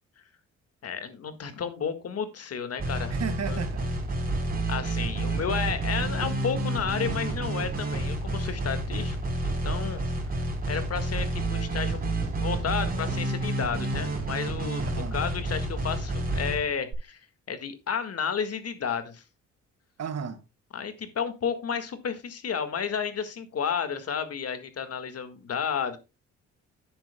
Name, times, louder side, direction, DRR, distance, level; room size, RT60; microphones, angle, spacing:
voice 1, 0.8-3.1 3.5-3.6 4.7-9.2 9.4-10.0 10.7-17.2 17.5-19.2 20.7-26.0, left 7 dB, 55° left, 1.7 m, -32 dB
sound 1, 2.8-16.9, right 2 dB, 30° right, 3.9 m, -29 dB
voice 2, 3.1-4.1 14.8-15.2 20.0-20.4, right 7 dB, 55° right, 1.7 m, -34 dB
10.5 x 9.8 x 2.2 m
cardioid pair, 90°, 30 cm